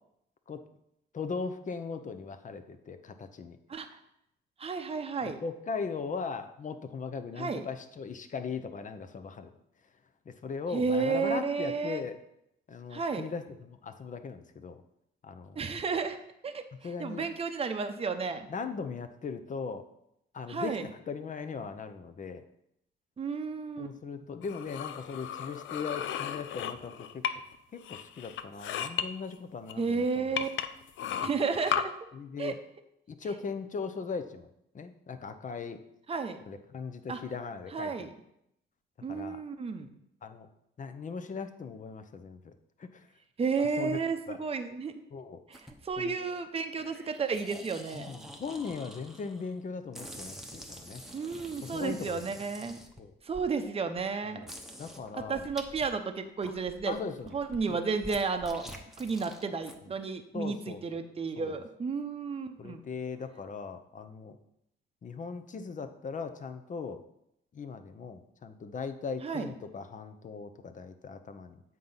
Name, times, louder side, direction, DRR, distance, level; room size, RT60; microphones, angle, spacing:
voice 1, 1.1-3.6 5.2-9.5 10.3-12.2 12.7-14.8 15.2-15.6 16.8-17.3 18.5-19.8 20.3-22.4 23.8-27.2 27.7-30.3 31.0-31.1 32.1-32.6 33.1-34.5 34.7-35.8 36.5-38.1 39.1-39.4 40.2-40.5 40.8-42.5 42.8-43.1 43.6-44.0 44.3-44.4 45.1-45.4 46.0-46.2 47.9-51.0 51.6-52.3 53.0-53.1 54.2-54.5 54.8-55.5 56.9-57.4 57.7-57.8 58.7-58.8 60.3-60.8 61.4-61.6 62.6-64.4 65.0-67.0 67.5-71.6, left 5 dB, 40° left, 9 dB, 0.7 m, -39 dB
voice 2, 4.6-5.4 7.4-7.7 10.7-12.0 12.9-13.3 15.6-16.2 16.4-16.6 17.0-18.5 20.5-20.8 23.2-23.9 29.8-30.5 31.2-31.9 32.4-32.5 36.1-36.4 37.1-37.2 37.7-38.1 39.0-39.9 43.4-44.9 45.5-48.1 51.1-52.8 53.2-54.4 55.2-57.0 57.3-58.6 59.0-62.8 69.2-69.5, right 5 dB, 30° right, 7 dB, 0.7 m, -32 dB
sound 1, 24.4-27.6 27.8-29.0 29.7-29.8 30.4-31.8, left 10 dB, 70° left, 0.5 m, -34 dB
sound 2, 45.5-46.0 46.8-49.5 49.9-53.5 54.0-54.1 54.4-55.9 56.2-59.8, right 1 dB, ahead, 0.9 m, -47 dB
7.6 x 3.9 x 5.6 m, 0.79 s
cardioid pair, 90°, 20 cm